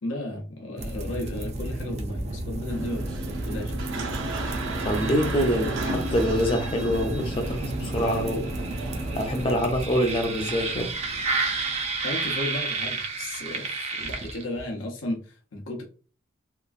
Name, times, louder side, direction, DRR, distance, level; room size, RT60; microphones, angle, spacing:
voice 1, 0.0-3.9 12.0-15.8, left 1 dB, 85° left, 1 dB, 0.7 m, -34 dB
sound 1, 0.8-14.7, right 3 dB, 35° right, 0.4 m, -31 dB
sound 2, 2.7-9.6, right 2 dB, 80° right, 0.6 m, -34 dB
voice 2, 4.3-8.5 9.2-10.9, equal, 30° left, 4 dB, 0.5 m, -26 dB
2.9 x 2.3 x 2.4 m, 0.38 s
head